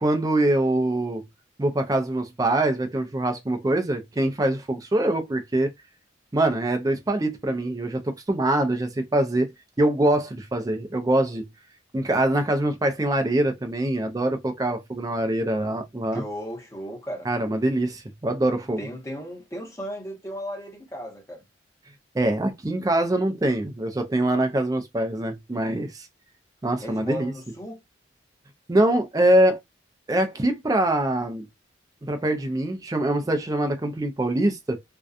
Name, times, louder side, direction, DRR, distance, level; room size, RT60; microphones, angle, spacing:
voice 1, 0.0-1.2 1.6-5.7 6.3-9.5 9.8-11.5 11.9-16.2 17.3-18.8 22.1-26.1 26.6-27.3 28.7-29.6 30.1-31.5 32.0-34.8, right 1 dB, 20° right, 0.4 m, -24 dB
voice 2, 16.1-17.3 18.8-21.4 26.8-27.8, equal, 15° left, 0.8 m, -35 dB
2.6 x 2.2 x 2.3 m
head